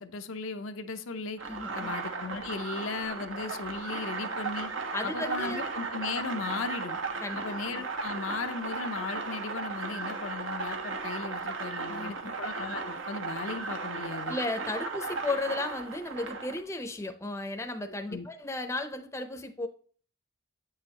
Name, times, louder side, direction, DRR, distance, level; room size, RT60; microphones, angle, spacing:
voice 1, 0.0-1.4 1.7-4.7 5.0-7.0 7.3-14.4 18.1-18.3, left 4 dB, 80° left, 0.7 m, -36 dB
voice 2, 1.4-1.9 4.9-5.6 7.2-7.6 11.9-12.1 14.3-19.7, left 2 dB, 15° left, 0.6 m, -34 dB
sound 1, 1.4-16.6, right 4 dB, 75° right, 1.1 m, -36 dB
8.5 x 6.4 x 2.9 m
head